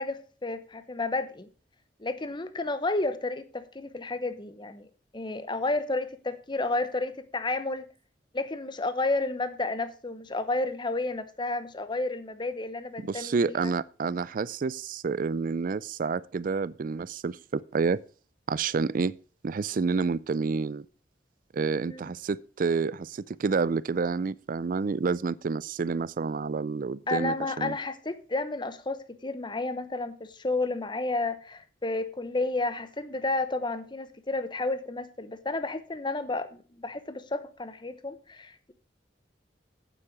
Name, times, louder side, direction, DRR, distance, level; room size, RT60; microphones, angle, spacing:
voice 1, 0.0-1.5 2.0-4.9 5.1-7.9 8.3-13.7 21.8-22.1 27.1-38.7, left 2 dB, 25° left, 0.9 m, -31 dB
voice 2, 13.0-18.0 18.5-19.1 19.4-20.9 21.5-27.8, right 4 dB, 50° right, 0.4 m, -29 dB
8.8 x 8.2 x 5.1 m
head